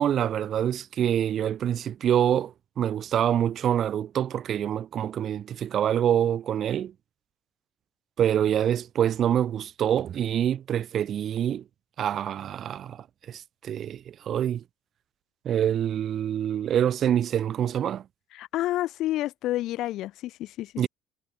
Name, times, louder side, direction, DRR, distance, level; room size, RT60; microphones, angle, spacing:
voice 1, 0.0-6.9 8.2-11.6 12.0-14.6 15.4-18.0 20.8-20.9, right 10 dB, 55° right, 0.6 m, -26 dB
voice 2, 18.3-20.9, left 15 dB, 65° left, 4.0 m, -30 dB
hypercardioid pair, 60°, 0 cm